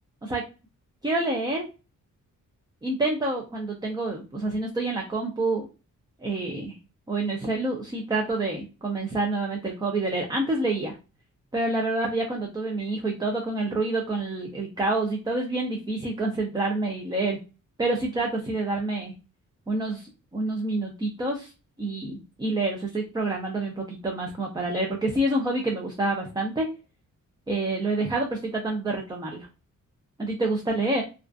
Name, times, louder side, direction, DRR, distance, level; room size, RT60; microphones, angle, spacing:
voice 1, 1.0-1.7 2.8-5.7 6.2-6.8 7.1-11.0 11.5-17.4 17.8-19.1 19.7-21.5 21.8-26.7 27.5-29.5 30.2-31.0, right 2 dB, 15° right, 0 dB, 0.4 m, -27 dB
2.4 x 2.3 x 2.4 m, 0.31 s
wide cardioid pair, 135°, 32 cm